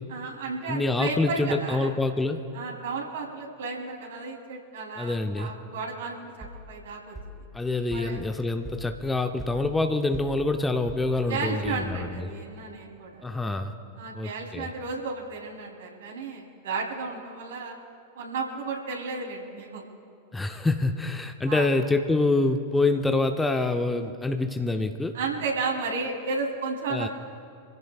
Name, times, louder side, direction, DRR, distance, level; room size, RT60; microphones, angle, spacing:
voice 1, 0.1-1.9 2.5-7.4 7.9-8.2 11.3-13.4 13.9-17.8 18.1-19.9 21.4-21.6 25.1-27.1, right 4 dB, 60° right, -1 dB, 3.4 m, -33 dB
voice 2, 0.7-2.4 5.0-5.5 7.5-12.3 13.2-13.7 14.1-14.7 20.3-25.1 26.9-27.1, left 2 dB, 10° left, 6 dB, 0.8 m, -26 dB
sound 1, 6.4-12.2, left 1 dB, 15° right, 1.7 m, -43 dB
27.5 x 16.0 x 2.5 m, 2.4 s
figure-of-eight pair, 90°, 0 cm